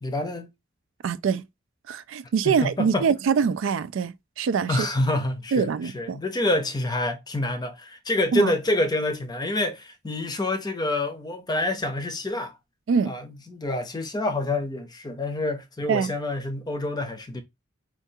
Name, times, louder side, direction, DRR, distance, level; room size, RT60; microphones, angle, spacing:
voice 1, 0.0-0.5 2.4-3.1 4.7-12.6 13.0-17.4, left 1 dB, 20° left, 0.5 m, -27 dB
voice 2, 1.0-1.4 1.9-4.9 5.5-6.2 8.3-8.5 12.9-13.1 15.9-16.1, right 6 dB, 80° right, 0.3 m, -24 dB
4.5 x 2.3 x 2.7 m
head